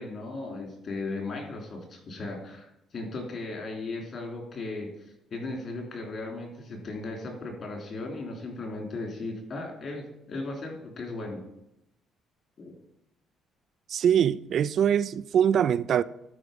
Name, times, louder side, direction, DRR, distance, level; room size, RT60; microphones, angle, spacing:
voice 1, 0.0-4.9 5.3-11.4 12.6-12.8, left 2 dB, 50° left, 3.1 m, -36 dB
voice 2, 13.9-16.0, right 9 dB, 55° right, 0.3 m, -23 dB
11.5 x 4.8 x 5.1 m
cardioid pair, 110°, 0 cm